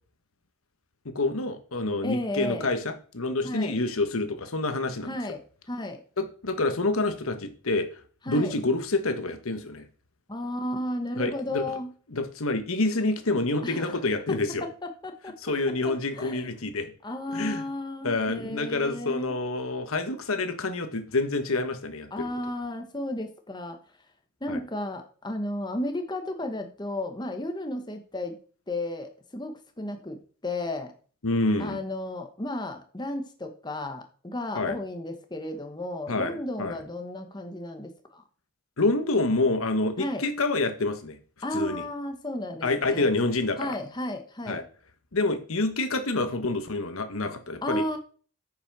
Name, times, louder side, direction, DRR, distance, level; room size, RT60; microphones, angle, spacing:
voice 1, 1.0-5.1 6.2-7.9 8.3-9.8 11.2-11.6 12.1-14.6 15.4-16.9 17.3-17.6 18.0-22.2 24.5-24.6 31.2-31.8 34.5-34.8 36.1-36.8 38.8-41.2 41.5-41.8 42.6-43.8 44.5-44.6 45.1-47.8, left 2 dB, 75° left, 9 dB, 1.3 m, -27 dB
voice 2, 2.0-2.7 3.4-3.8 5.1-6.0 8.2-8.5 10.3-11.9 13.6-14.0 14.6-15.4 15.8-16.5 17.0-19.3 22.1-23.8 24.4-28.4 28.7-30.9 31.6-38.2 40.0-40.2 41.4-43.1 43.6-44.6 47.6-48.0, left 1 dB, 20° left, 6 dB, 1.2 m, -33 dB
9.3 x 5.7 x 6.1 m, 0.41 s
head